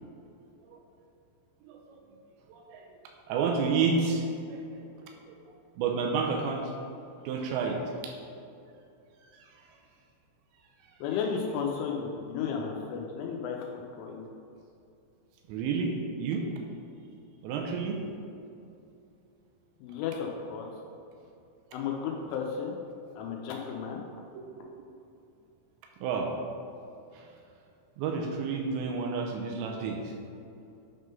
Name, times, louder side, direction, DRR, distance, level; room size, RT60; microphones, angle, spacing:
voice 1, 1.6-2.0 2.5-2.9 3.3-4.6 5.3-5.4 5.8-6.7 7.3-8.1 15.5-16.5 17.4-18.1 26.0-26.3 27.1-27.3 28.0-30.1, right 4 dB, 85° right, 2 dB, 2.6 m, -30 dB
voice 2, 11.0-13.6 13.9-14.3 19.8-20.7 21.7-22.7 23.2-24.0, left 6 dB, 85° left, 0 dB, 3.1 m, -33 dB
9.3 x 3.7 x 5.3 m, 2.6 s
omnidirectional pair, 5.6 m